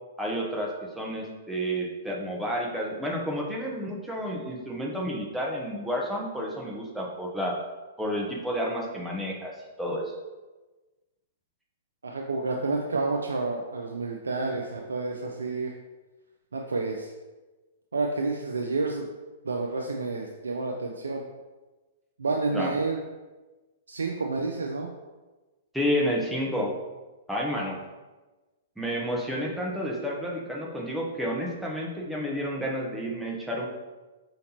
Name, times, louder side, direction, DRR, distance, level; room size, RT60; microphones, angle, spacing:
voice 1, 0.2-7.6 8.0-10.1 22.5-22.7 25.7-26.7 27.3-27.8 28.8-33.7, equal, 5° right, -3 dB, 0.8 m, -30 dB
voice 2, 12.0-15.7 16.5-17.1 17.9-19.1 19.4-21.3 22.2-23.0 23.9-24.9, right 3 dB, 80° right, 1 dB, 0.4 m, -29 dB
4.9 x 2.9 x 2.8 m, 1.2 s
figure-of-eight pair, 110°, 0 cm